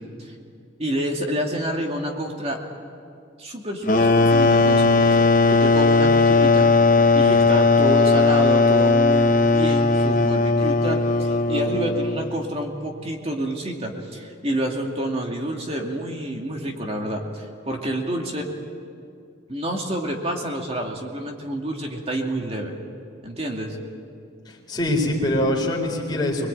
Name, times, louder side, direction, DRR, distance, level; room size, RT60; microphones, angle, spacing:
voice 1, 0.8-2.6 3.4-6.7 7.1-18.5 19.5-22.7 23.2-23.8, right 1 dB, 30° right, 1 dB, 2.4 m, -28 dB
sound 1, 3.9-12.3, left 3 dB, 45° left, 0.8 m, -17 dB
voice 2, 24.5-26.5, left 1 dB, 20° left, -2 dB, 4.2 m, -24 dB
25.5 x 21.0 x 8.9 m, 2.4 s
head